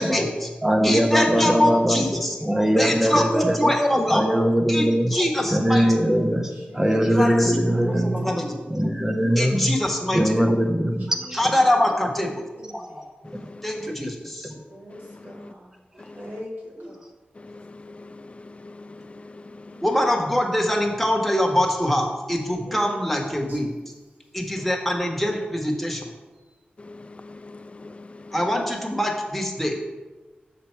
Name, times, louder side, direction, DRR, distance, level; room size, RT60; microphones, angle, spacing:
voice 1, 0.0-0.5 0.8-2.4 2.7-4.2 4.7-6.0 7.1-8.6 9.4-10.4 11.4-12.4 13.6-14.5 16.8-16.9 19.8-23.7 24.3-26.1 28.3-29.8, left 1 dB, 5° left, 1.4 m, -24 dB
voice 2, 0.6-2.0 2.4-3.7 4.1-5.2 5.5-8.3 8.7-9.7 10.1-11.4 12.7-13.0 14.4-14.5, equal, 15° right, 0.8 m, -21 dB
voice 3, 2.2-2.7 6.1-7.4 7.6-8.9 11.1-11.3 12.2-13.1 14.7-15.7 16.1-17.0 19.7-19.9 22.4-23.1 23.5-23.6, equal, 70° right, 2.1 m, -41 dB
voice 4, 13.3-13.7 15.3-15.5 16.1-16.3 17.4-19.8 26.8-28.3, left 2 dB, 35° left, 0.4 m, -43 dB
6.7 x 5.8 x 4.5 m
cardioid pair, 60°, 3 cm